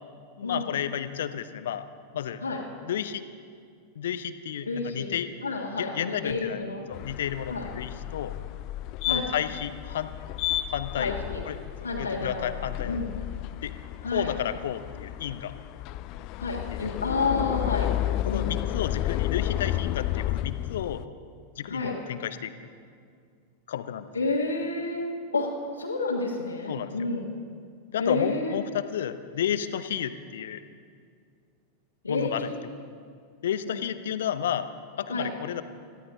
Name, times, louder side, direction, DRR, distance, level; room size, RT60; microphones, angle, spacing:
voice 1, 0.4-1.8 2.1-2.4 2.8-3.2 4.0-5.3 5.8-6.6 6.9-8.4 9.1-10.1 10.7-11.1 11.5-11.6 12.0-13.0 13.6-13.7 14.1-15.5 16.7-16.9 18.2-21.0 21.6-22.5 23.7-24.1 26.7-27.1 27.9-30.6 32.1-32.5 33.4-34.7 35.0-35.6, left 10 dB, 60° left, 12 dB, 0.8 m, -32 dB
voice 2, 4.6-5.1 5.4-6.9 7.5-7.6 9.1-9.3 11.0-11.4 11.8-13.2 14.0-14.3 16.4-17.9 18.3-18.6 21.6-21.9 24.1-25.0 25.3-25.5 25.8-27.3 28.0-28.6 32.0-32.5 33.6-33.8 35.1-35.3, left 3 dB, 80° left, -4 dB, 1.7 m, -30 dB
sound 1, 6.9-21.0, left 13 dB, 40° left, 0.3 m, -32 dB
21.5 x 15.0 x 3.8 m, 2.2 s
figure-of-eight pair, 90°, 0 cm